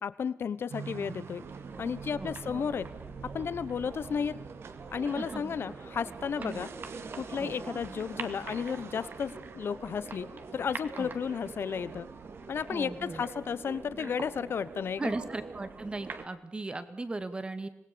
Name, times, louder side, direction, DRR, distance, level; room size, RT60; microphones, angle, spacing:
voice 1, 0.0-1.4 1.8-2.9 3.3-4.3 4.9-6.7 7.2-10.3 10.5-12.1 12.5-15.1, left 6 dB, 50° left, 16 dB, 1.0 m, -33 dB
sound 1, 0.7-13.7, right 6 dB, 60° right, 1.5 m, -49 dB
sound 2, 1.4-16.2, right 4 dB, 45° right, 2.2 m, -44 dB
sound 3, 4.1-4.3 4.6-5.1 5.4-11.3, left 5 dB, 35° left, 2.3 m, -58 dB
voice 2, 5.2-5.5 6.4-6.6 7.4-7.5 11.0-11.1 12.7-13.2 15.0-17.7, right 2 dB, 20° right, 11 dB, 1.9 m, -37 dB
26.0 x 19.5 x 6.9 m, 0.73 s
wide cardioid pair, 145°, 5 cm